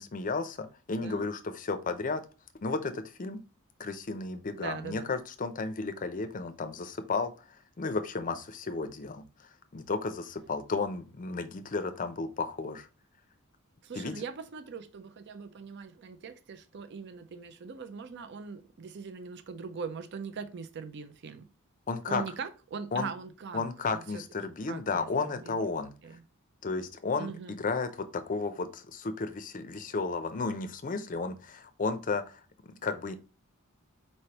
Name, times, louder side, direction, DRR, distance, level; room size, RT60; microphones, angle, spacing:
voice 1, 0.0-2.2 2.6-3.4 3.8-12.9 13.9-14.1 21.9-22.2 22.9-23.1 23.5-25.9 26.6-33.2, left 4 dB, 35° left, 0.5 m, -33 dB
voice 2, 4.6-5.2 13.8-21.5 22.1-23.7 23.9-24.2 24.7-25.1 25.4-25.5 26.0-26.2 27.2-27.6, right 5 dB, 50° right, 0.5 m, -41 dB
4.3 x 3.3 x 2.8 m
head